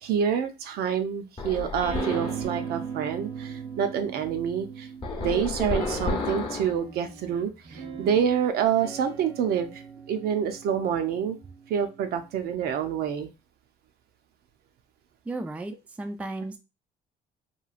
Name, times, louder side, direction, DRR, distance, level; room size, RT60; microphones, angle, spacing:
voice 1, 0.0-4.9 5.2-9.8 10.1-11.4 11.7-13.3, right 8 dB, 70° right, 7 dB, 0.5 m, -27 dB
sound 1, 1.4-2.4 5.0-6.8, left 3 dB, 30° left, 0.8 m, -31 dB
sound 2, 1.8-5.1 5.7-12.4, right 6 dB, 90° right, 0.9 m, -39 dB
voice 2, 15.3-16.6, right 2 dB, 10° right, 7 dB, 0.3 m, -34 dB
3.0 x 2.3 x 2.4 m, 0.27 s
cardioid pair, 110°, 17 cm